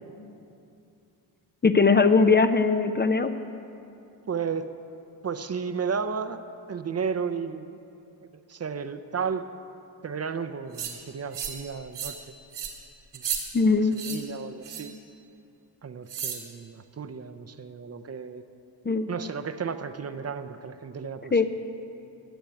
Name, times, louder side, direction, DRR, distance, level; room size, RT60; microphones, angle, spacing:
voice 1, 1.6-3.3 13.5-14.0 18.9-19.1 21.3-21.5, left 4 dB, 25° left, 9 dB, 0.5 m, -20 dB
voice 2, 4.3-4.7 5.2-6.4 6.7-7.8 8.5-9.5 10.0-12.2 13.1-13.2 13.9-14.9 15.8-18.4 19.1-21.5, right 6 dB, 35° right, 10 dB, 0.6 m, -33 dB
sound 1, 10.7-10.9 11.3-11.6 11.9-12.2 12.5-12.7 13.1-13.4 13.9-14.2 14.6-14.9 16.1-16.4, right 8 dB, 80° right, 2.4 m, -33 dB
13.0 x 7.2 x 9.7 m, 2.7 s
cardioid pair, 90°, 42 cm